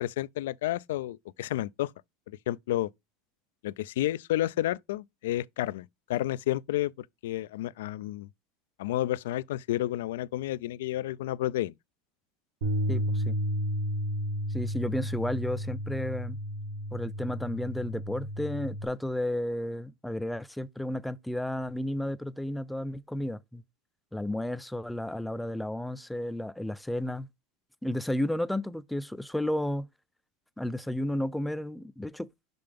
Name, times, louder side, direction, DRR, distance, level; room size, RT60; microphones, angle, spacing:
voice 1, 0.0-1.9 2.3-2.9 3.6-8.3 8.8-11.7, left 14 dB, 80° left, 0.3 m, -31 dB
Bass guitar, 12.6-18.9, equal, 85° right, 2.0 m, -32 dB
voice 2, 12.9-13.4 14.5-16.4 16.9-23.6 24.1-27.3 27.8-29.9 30.6-32.3, left 1 dB, 5° left, 0.4 m, -32 dB
5.7 x 5.2 x 3.4 m
supercardioid pair, 125°, 0 cm